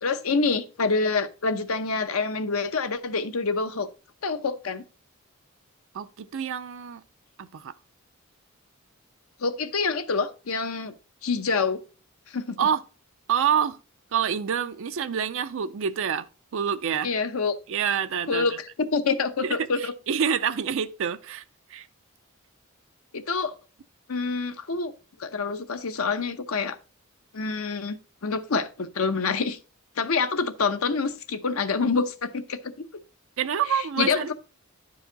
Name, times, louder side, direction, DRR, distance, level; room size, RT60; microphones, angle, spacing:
voice 1, 0.0-3.9 4.2-4.8 9.4-10.9 11.2-11.8 12.3-12.5 17.0-17.5 18.3-19.9 23.1-23.5 24.1-24.9 25.2-26.8 27.3-28.0 28.2-29.6 30.0-32.9 33.7-34.3, left 4 dB, 80° left, 0.8 m, -26 dB
voice 2, 5.9-7.0 7.4-7.7 12.6-12.8 13.3-13.8 14.1-17.1 17.7-18.5 19.4-21.4 21.7-21.9 33.4-34.3, right 8 dB, 65° right, 0.4 m, -27 dB
10.0 x 4.8 x 3.9 m
head